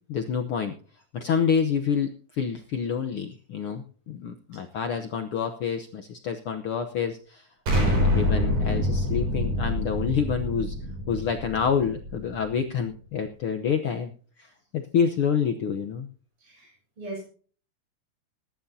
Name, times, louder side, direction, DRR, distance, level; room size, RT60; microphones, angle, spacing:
voice 1, 0.1-0.7 1.1-10.7 11.1-14.1 14.4-16.1, left 7 dB, 70° left, 5 dB, 1.3 m, -28 dB
Explosion, 7.7-12.5, left 1 dB, 90° right, 6.3 m, -26 dB
voice 2, 16.4-17.2, right 2 dB, 45° right, -2 dB, 7.7 m, -39 dB
21.5 x 11.5 x 2.7 m, 0.41 s
omnidirectional pair, 3.6 m